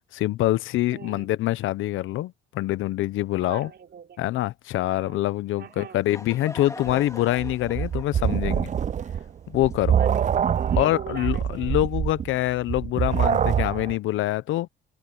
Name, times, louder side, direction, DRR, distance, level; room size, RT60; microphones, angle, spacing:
voice 1, 0.1-3.7 4.2-8.7 9.5-10.0 10.8-14.7, left 15 dB, 85° left, 0.7 m, -25 dB
voice 2, 0.9-1.3 3.4-4.2 4.8-5.2 5.6-6.0 9.9-11.8, right 8 dB, 55° right, 4.0 m, -41 dB
Laughter / Crowd, 5.7-10.4, left 2 dB, 15° left, 2.3 m, -42 dB
sound 1, 6.9-13.9, right 8 dB, 40° right, 0.5 m, -25 dB
cardioid pair, 90°, 20 cm